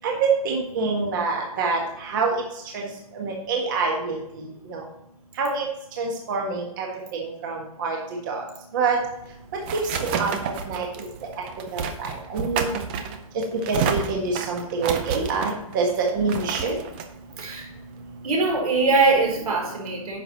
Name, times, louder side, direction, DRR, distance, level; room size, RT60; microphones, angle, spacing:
voice 1, 0.4-1.8 2.1-2.3 2.7-2.8 3.2-4.2 4.7-4.8 5.4-5.7 6.0-6.9 7.2-8.0 8.3-8.4 8.7-9.0 9.7-10.3 10.7-10.9 11.7-11.8 12.3-12.7 13.7-16.7, right 4 dB, 35° right, 0 dB, 1.6 m, -26 dB
sound 1, 9.0-18.3, right 6 dB, 15° right, 0.5 m, -31 dB
voice 2, 18.2-20.2, right 3 dB, 90° right, 1 dB, 3.6 m, -22 dB
10.0 x 6.1 x 4.1 m, 0.82 s
hypercardioid pair, 175°, 18 cm